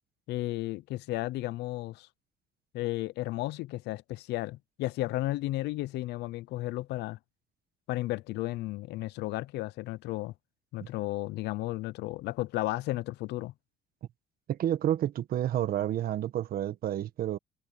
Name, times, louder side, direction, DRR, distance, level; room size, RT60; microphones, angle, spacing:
voice 1, 0.3-2.1 2.7-7.2 7.9-10.3 10.7-13.5, left 18 dB, 80° left, 0.7 m, -33 dB
voice 2, 14.5-17.4, right 11 dB, 60° right, 1.4 m, -30 dB
cardioid pair, 110°, 17 cm